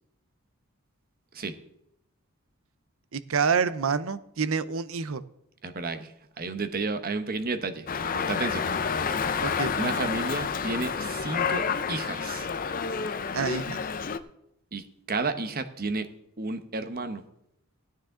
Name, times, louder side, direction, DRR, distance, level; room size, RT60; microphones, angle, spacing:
voice 1, 3.1-5.2 9.4-9.7 13.3-13.8, right 5 dB, 65° right, 14 dB, 0.6 m, -27 dB
voice 2, 5.6-7.9 8.1-8.7 9.8-12.5 14.7-16.1 16.4-17.2, right 3 dB, 40° right, 9 dB, 0.9 m, -32 dB
Dog, 7.9-14.2, left 6 dB, 40° left, 0.6 m, -29 dB
16.5 x 9.6 x 3.8 m, 0.79 s
head